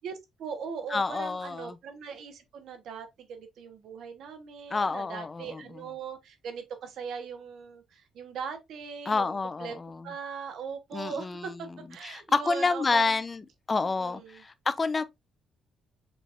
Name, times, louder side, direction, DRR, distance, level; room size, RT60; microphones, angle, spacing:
voice 1, 0.0-9.7 10.0-13.2 13.8-14.4, right 6 dB, 75° right, 1.2 m, -40 dB
voice 2, 0.9-1.8 4.7-5.6 9.1-10.1 10.9-11.6 12.0-13.4 13.7-15.0, left 4 dB, 30° left, 0.6 m, -29 dB
6.0 x 3.3 x 2.5 m
cardioid pair, 90°, 0 cm